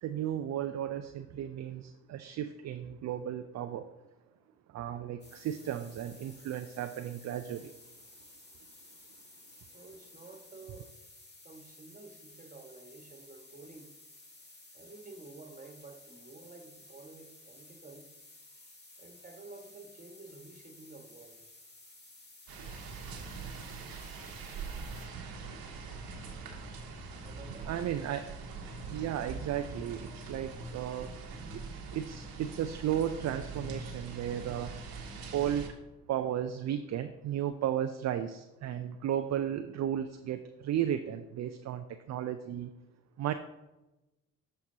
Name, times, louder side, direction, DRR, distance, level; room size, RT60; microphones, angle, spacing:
voice 1, 0.0-3.9 4.7-7.7 27.7-28.3 28.9-31.2 31.5-31.6 31.9-34.7 35.3-35.8 36.1-42.7 43.2-43.3, right 10 dB, 45° right, 0.5 m, -34 dB
voice 2, 4.9-5.2 9.7-10.9 11.4-13.9 14.7-18.1 19.0-21.4 27.2-27.8, right 3 dB, 20° right, 1.6 m, -51 dB
sound 1, 5.2-25.1, left 2 dB, 25° left, 1.7 m, -55 dB
sound 2, 22.5-35.7, right 4 dB, 70° right, 1.2 m, -43 dB
13.0 x 4.5 x 2.8 m
hypercardioid pair, 45°, 37 cm